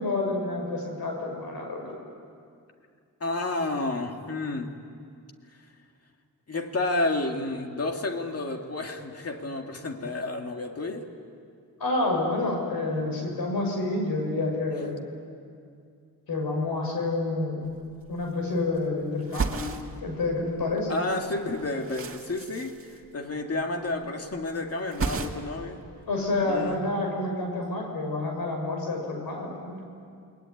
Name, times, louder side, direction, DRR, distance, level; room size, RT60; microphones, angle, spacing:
voice 1, 0.0-1.8 11.8-14.9 16.3-17.6 18.1-19.6 20.0-20.9 26.1-29.8, left 2 dB, 85° left, 1 dB, 6.4 m, -28 dB
voice 2, 3.2-4.8 6.5-11.1 20.9-25.8 26.4-26.8, left 2 dB, 45° left, 3 dB, 2.4 m, -30 dB
sound 1, 17.6-17.7 18.0-18.8 19.2-20.8 21.1-23.6 23.9-24.4 24.6-25.7 26.0-26.8, right 4 dB, 40° right, 1.9 m, -35 dB
29.0 x 20.5 x 9.4 m, 2.3 s
wide cardioid pair, 125°, 35 cm